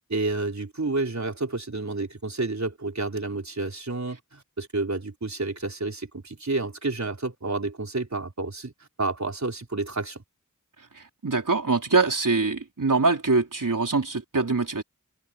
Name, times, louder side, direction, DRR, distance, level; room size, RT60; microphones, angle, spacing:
voice 1, 0.1-8.7 9.0-10.2, right 3 dB, 60° right, 4.2 m, -30 dB
voice 2, 11.2-14.8, right 3 dB, 90° right, 3.9 m, -23 dB
wide cardioid pair, 55°, 31 cm